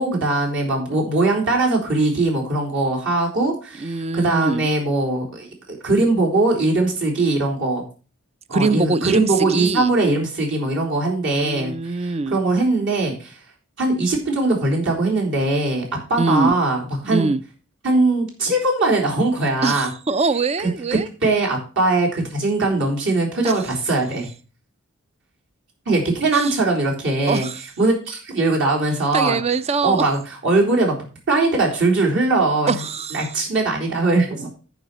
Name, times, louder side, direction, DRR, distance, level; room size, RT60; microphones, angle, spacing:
voice 1, 0.0-7.8 8.5-13.4 13.8-15.8 16.1-17.3 17.8-19.9 20.9-24.3 25.9-27.5 27.8-29.4 29.8-30.9 31.3-32.8 33.1-34.5, right 2 dB, 60° right, -2 dB, 3.8 m, -20 dB
voice 2, 3.8-4.7 8.5-9.9 11.4-12.4 16.2-16.5 17.0-17.4 19.6-21.1 23.4-23.5 26.3-26.5 27.3-27.6 29.1-30.0 32.7-33.3, right 3 dB, 30° right, 15 dB, 0.5 m, -23 dB
10.0 x 4.9 x 6.7 m, 0.36 s
head